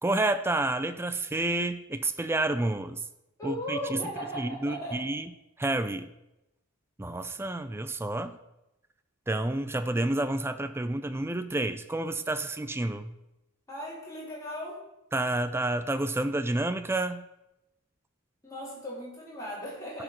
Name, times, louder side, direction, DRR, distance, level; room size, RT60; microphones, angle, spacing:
voice 1, 0.0-3.0 3.4-4.0 4.4-5.2 5.6-6.1 7.0-8.4 9.3-13.1 15.1-17.2, right 2 dB, 10° right, 9 dB, 0.4 m, -29 dB
voice 2, 3.4-5.0 13.7-14.8 18.4-20.0, equal, 15° left, -6 dB, 3.5 m, -37 dB
11.5 x 5.0 x 5.9 m, 0.92 s
head